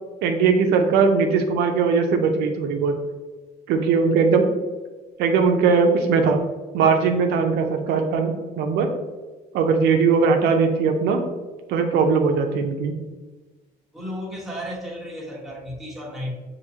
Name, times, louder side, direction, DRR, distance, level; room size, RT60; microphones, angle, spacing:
voice 1, 0.2-3.0 3.7-4.5 5.2-6.4 6.7-8.9 9.5-11.2 11.7-13.0, right 5 dB, 85° right, 4 dB, 0.6 m, -20 dB
voice 2, 13.9-16.3, equal, ahead, -4 dB, 1.1 m, -33 dB
6.0 x 2.8 x 2.7 m, 1.2 s
cardioid pair, 110°, 17 cm